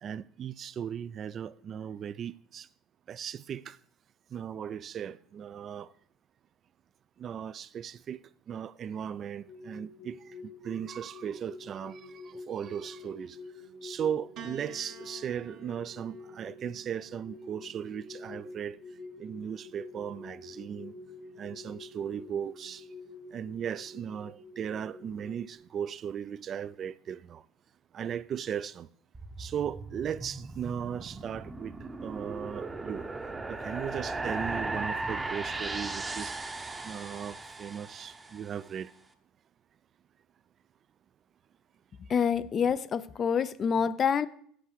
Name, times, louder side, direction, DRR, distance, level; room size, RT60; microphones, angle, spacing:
voice 1, 0.0-2.7 3.1-3.8 4.3-5.9 7.2-8.2 8.5-13.4 13.8-18.8 19.2-20.9 21.4-22.9 23.3-27.4 27.9-28.9 29.4-33.1 33.5-36.3 36.8-38.9 43.8-43.9, right 8 dB, 45° right, 0.3 m, -37 dB
sound 1, 9.5-25.6, left 3 dB, 90° left, 2.3 m, -48 dB
Piano, 14.4-18.8 19.9-20.6, right 5 dB, 60° right, 1.0 m, -52 dB
sound 2, 29.1-38.5, right 3 dB, 15° right, 0.8 m, -37 dB
voice 2, 42.1-44.3, left 7 dB, 40° left, 0.4 m, -27 dB
7.9 x 4.7 x 6.4 m
supercardioid pair, 100°, 0 cm